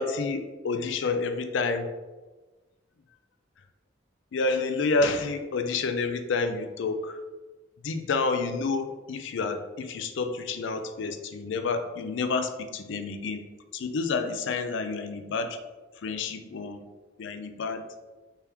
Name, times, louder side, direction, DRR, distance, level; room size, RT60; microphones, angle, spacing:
voice 1, 0.0-1.9 4.3-7.2 7.8-15.6 16.0-16.8 17.2-17.9, left 4 dB, 70° left, 8 dB, 0.4 m, -29 dB
3.4 x 2.9 x 3.4 m, 1.2 s
head